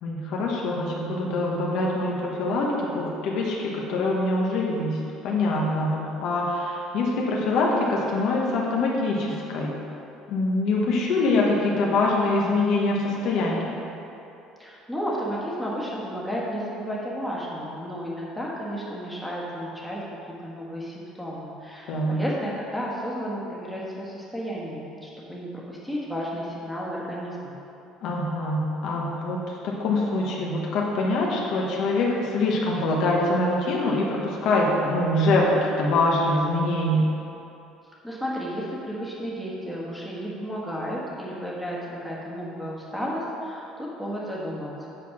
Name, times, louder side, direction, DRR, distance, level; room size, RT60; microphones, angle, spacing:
voice 1, 0.0-9.7 10.3-13.7 21.9-22.2 28.0-29.4 29.6-37.0, left 2 dB, 60° left, -3 dB, 1.1 m, -24 dB
voice 2, 14.6-20.0 20.4-27.5 38.0-44.9, equal, ahead, -6 dB, 1.5 m, -32 dB
8.1 x 4.5 x 6.0 m, 2.9 s
cardioid pair, 145°, 0 cm